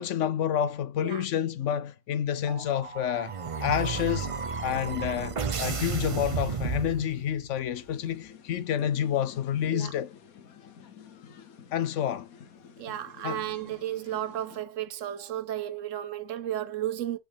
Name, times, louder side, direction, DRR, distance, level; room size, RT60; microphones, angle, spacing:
voice 1, 0.0-3.3 3.6-4.3 4.6-10.1 11.7-12.3 13.2-13.4, left 9 dB, 70° left, 0.8 m, -29 dB
sound 1, 2.4-7.5, right 5 dB, 40° right, 0.4 m, -33 dB
sound 2, 7.7-14.6, left 7 dB, 85° left, 1.4 m, -51 dB
voice 2, 12.8-17.2, right 12 dB, 70° right, 1.0 m, -33 dB
6.3 x 5.4 x 3.4 m
omnidirectional pair, 1.4 m